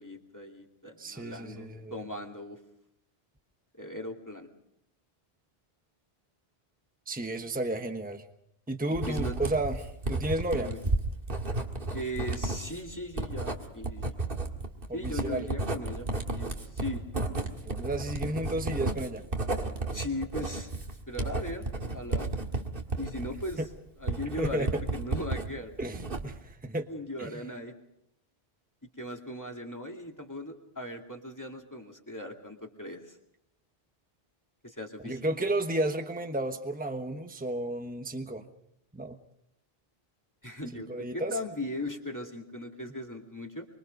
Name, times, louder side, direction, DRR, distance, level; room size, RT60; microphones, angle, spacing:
voice 1, 0.0-2.6 3.8-4.5 9.1-9.4 10.6-10.8 11.9-14.5 14.9-16.1 16.3-17.1 19.9-22.4 23.0-23.6 24.0-25.7 26.9-27.7 29.0-33.2 34.6-35.4 40.4-43.7, left 1 dB, 20° left, 2 dB, 2.4 m, -38 dB
voice 2, 1.0-2.1 7.1-8.2 8.7-10.7 14.9-15.5 17.6-19.2 23.6-23.7 24.4-24.7 25.8-26.9 27.2-27.3 35.0-38.5 38.9-39.2 40.7-41.3, right 1 dB, 10° right, 6 dB, 1.2 m, -32 dB
Writing, 8.9-25.5 25.8-26.5, right 2 dB, 60° right, 2.1 m, -33 dB
24.5 x 24.5 x 5.3 m, 0.78 s
omnidirectional pair, 1.0 m